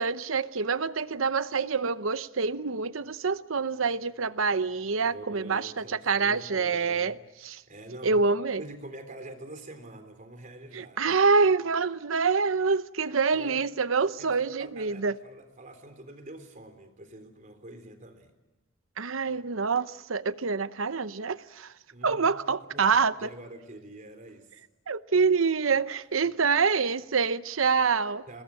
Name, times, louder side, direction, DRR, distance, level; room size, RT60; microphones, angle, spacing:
voice 1, 0.0-7.1 7.4-7.6 8.0-8.6 10.7-15.1 19.0-21.7 22.0-23.1 24.9-28.2, right 5 dB, 85° right, 0.8 m, -26 dB
voice 2, 5.0-7.2 7.5-8.2 8.6-11.1 13.3-13.6 14.6-18.3 21.9-24.6 28.3-28.4, right 1 dB, 40° right, 3.6 m, -46 dB
28.0 x 21.0 x 8.8 m
head